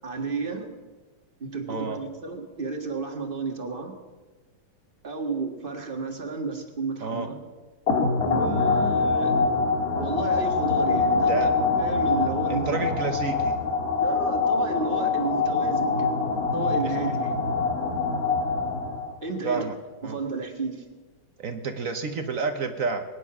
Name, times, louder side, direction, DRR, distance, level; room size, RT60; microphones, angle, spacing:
voice 1, 0.0-0.7 1.4-3.9 5.0-7.4 8.2-9.4 10.0-11.5 11.8-12.9 13.9-17.3 19.2-19.7 20.0-20.8, right 4 dB, 30° right, 4 dB, 1.8 m, -32 dB
voice 2, 1.7-2.0 7.0-7.3 11.3-11.5 12.5-13.5 19.4-19.8 20.0-20.2 21.4-23.0, right 4 dB, 55° right, 7 dB, 1.3 m, -29 dB
sound 1, 7.9-19.2, left 4 dB, 55° left, 2.1 m, -24 dB
22.0 x 10.0 x 6.1 m, 1.4 s
omnidirectional pair, 1.9 m